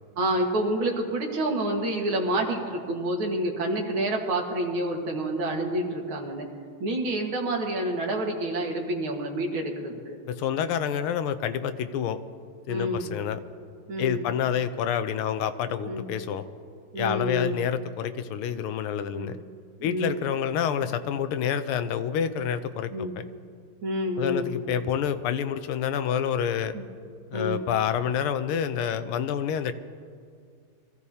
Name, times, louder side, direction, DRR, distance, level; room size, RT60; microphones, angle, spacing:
voice 1, 0.2-6.5 6.8-10.2 12.7-13.1 13.9-14.3 15.9-16.1 16.9-17.6 19.1-19.3 19.8-20.2 22.9-23.2 23.8-24.5 26.7-26.8 27.3-27.7, right 1 dB, 75° right, 1 dB, 2.5 m, -28 dB
voice 2, 10.3-12.2 12.7-13.4 14.0-16.5 17.0-19.4 19.8-23.2 24.2-26.8 27.3-29.7, left 8 dB, 90° left, 10 dB, 1.6 m, -28 dB
23.5 x 15.0 x 2.8 m, 2.2 s
omnidirectional pair, 2.3 m